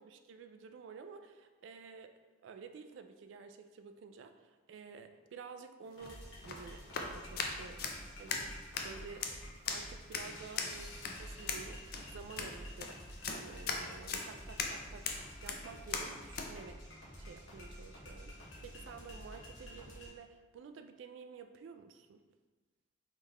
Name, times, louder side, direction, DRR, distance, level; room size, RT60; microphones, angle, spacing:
voice 1, 0.0-7.9 8.2-9.3 9.7-16.9 17.2-22.2, right 5 dB, 80° right, 8 dB, 0.3 m, -51 dB
sound 1, 5.9-16.5, left 5 dB, 50° left, 0.4 m, -40 dB
sound 2, 6.0-20.1, equal, 85° left, 1.0 m, -50 dB
3.7 x 3.3 x 2.9 m, 1.3 s
head